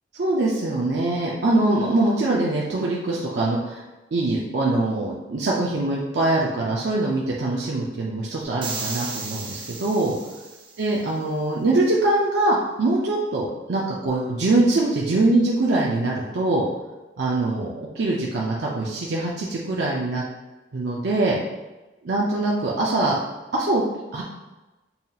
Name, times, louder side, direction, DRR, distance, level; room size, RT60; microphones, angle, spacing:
voice 1, 0.2-3.8 4.1-10.1 10.8-16.6 17.2-20.2 20.7-21.4 22.0-23.2 23.5-23.8 24.1-24.2, right 2 dB, 65° right, -4 dB, 0.5 m, -23 dB
sound 1, 8.6-10.9, right 4 dB, 25° right, 0.6 m, -34 dB
5.5 x 2.7 x 2.4 m, 1.1 s
head